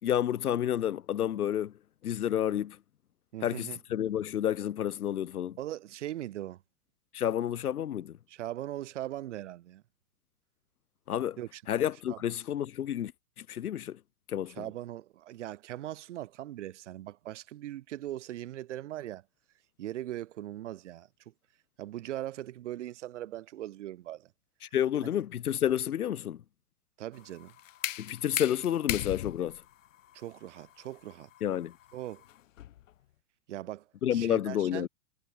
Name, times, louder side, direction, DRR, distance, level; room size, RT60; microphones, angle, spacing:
voice 1, 0.0-1.7 2.0-2.8 3.4-5.6 7.1-8.2 11.1-11.4 11.7-13.1 13.4-14.0 14.3-14.6 24.7-26.4 28.0-29.6 31.4-31.7 34.0-34.9, left 10 dB, 70° left, 7.2 m, -30 dB
voice 2, 3.3-3.8 5.6-6.6 8.3-9.8 11.4-11.6 12.1-12.2 14.5-19.2 19.8-21.1 21.8-24.3 27.0-27.5 30.1-31.3 31.9-32.2 33.5-33.8 34.1-34.9, right 13 dB, 50° right, 5.6 m, -40 dB
sound 1, 27.1-32.9, left 12 dB, 55° left, 3.3 m, -39 dB
supercardioid pair, 180°, 46 cm